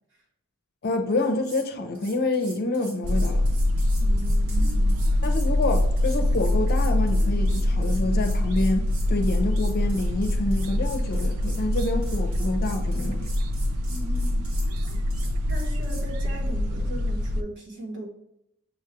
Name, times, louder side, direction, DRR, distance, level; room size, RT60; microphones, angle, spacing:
voice 1, 0.8-3.4 5.2-13.3, left 2 dB, 45° left, 0.5 m, -27 dB
sound 1, 1.2-1.7 1.9-16.1, right 2 dB, 70° right, 1.4 m, -45 dB
sound 2, 3.0-17.4, left 1 dB, 85° right, 0.4 m, -24 dB
voice 2, 4.0-5.2 13.9-14.6 14.9-15.0 15.5-18.1, right 1 dB, 55° right, 1.2 m, -38 dB
6.2 x 2.3 x 3.0 m
head